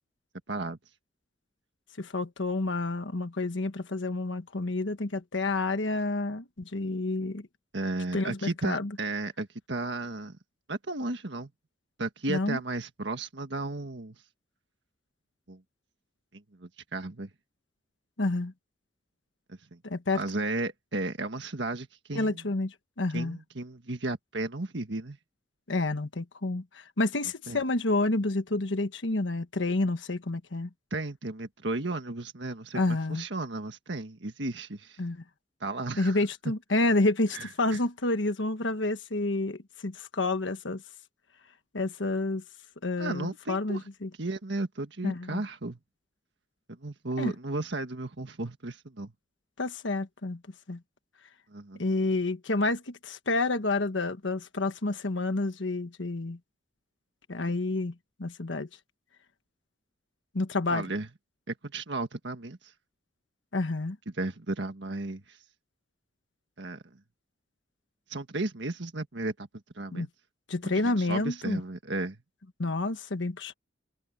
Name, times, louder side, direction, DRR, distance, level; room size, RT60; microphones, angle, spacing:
voice 1, 0.5-0.8 7.7-10.4 10.7-11.5 12.0-14.2 15.5-15.6 16.3-17.3 19.5-19.8 20.1-22.5 23.1-25.2 27.5-27.6 30.9-35.0 35.6-36.2 37.3-37.8 43.0-43.8 44.2-45.8 46.8-49.1 51.5-51.8 60.7-61.1 61.5-62.7 64.1-65.4 66.6-66.8 68.1-69.5 69.8-70.1 70.6-72.2, right 2 dB, 70° right, 1.7 m, -34 dB
voice 2, 2.0-6.4 6.7-7.4 8.1-8.9 12.3-12.6 18.2-18.5 19.8-20.2 22.1-23.4 25.7-30.7 32.7-33.2 35.0-35.2 36.0-40.8 41.7-42.4 42.8-44.1 45.0-45.4 47.2-47.3 49.6-50.4 50.7-50.8 51.8-56.4 57.3-57.9 58.2-58.7 60.3-60.9 63.5-64.0 69.9-70.1 70.5-71.6 72.6-73.5, left 2 dB, 90° left, 1.3 m, -29 dB
head